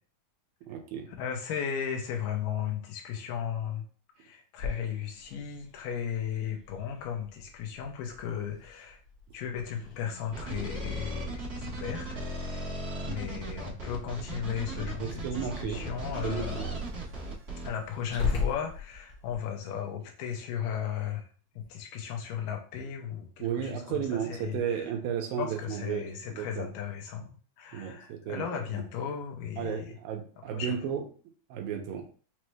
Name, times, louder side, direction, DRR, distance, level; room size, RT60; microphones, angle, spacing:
voice 1, 0.7-1.1 15.0-15.8 16.2-16.7 23.4-26.7 27.7-28.8 29.6-31.0 31.5-32.0, right 8 dB, 90° right, 3 dB, 2.4 m, -34 dB
voice 2, 1.2-3.8 4.2-9.0 9.3-12.7 13.0-16.7 17.6-21.3 21.7-24.9 25.4-30.0 30.5-30.8, left 8 dB, 80° left, 2 dB, 2.3 m, -36 dB
Growling, 4.6-19.4, left 5 dB, 50° left, 1.5 m, -41 dB
sound 1, 10.3-17.7, right 1 dB, 65° right, 0.9 m, -37 dB
sound 2, 14.7-19.7, right 3 dB, 45° right, 1.2 m, -50 dB
6.1 x 2.2 x 3.1 m, 0.40 s
omnidirectional pair, 4.1 m